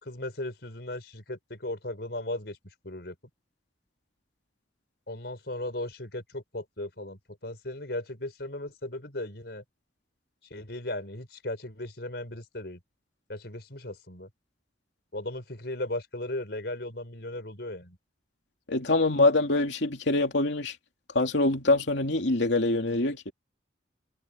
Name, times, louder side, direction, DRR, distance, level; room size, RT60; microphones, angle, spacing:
voice 1, 0.0-2.6 2.8-3.1 5.1-9.6 10.5-12.8 13.3-14.3 15.1-18.0, left 1 dB, 65° left, 4.6 m, -36 dB
voice 2, 18.7-20.8 21.1-23.3, left 2 dB, 80° left, 2.6 m, -24 dB
head